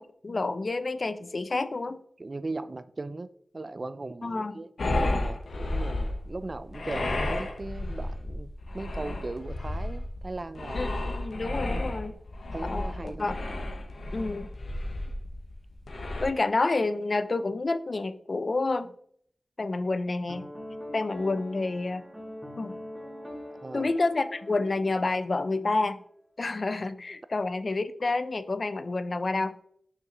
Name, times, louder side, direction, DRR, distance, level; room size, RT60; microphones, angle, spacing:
voice 1, 0.0-2.0 4.2-4.6 10.7-12.1 12.6-13.4 14.1-14.5 16.2-18.9 19.6-20.5 20.9-22.0 22.6-22.8 23.7-26.0 26.4-29.6, left 3 dB, 50° left, 12 dB, 0.4 m, -29 dB
voice 2, 2.2-10.9 11.7-11.9 12.5-13.4 23.5-23.9, right 2 dB, 45° right, 14 dB, 0.4 m, -38 dB
sound 1, 4.8-16.3, left 2 dB, 80° left, 1.0 m, -32 dB
Piano, 20.3-25.6, left 1 dB, 5° right, 1.6 m, -43 dB
6.5 x 5.7 x 3.0 m, 0.64 s
wide cardioid pair, 70°, 0 cm